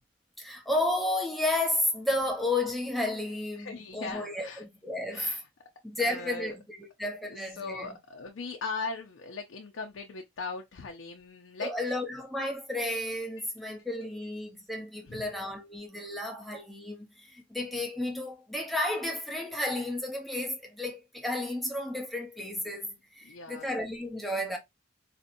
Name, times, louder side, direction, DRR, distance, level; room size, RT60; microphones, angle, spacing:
voice 1, 0.4-5.3 5.8-7.9 11.6-24.6, left 1 dB, ahead, 0.8 m, -32 dB
voice 2, 3.6-4.6 5.1-5.4 6.0-6.6 7.3-11.9 15.0-15.3 23.2-23.7, left 4 dB, 70° left, 0.5 m, -39 dB
4.1 x 2.7 x 2.6 m
head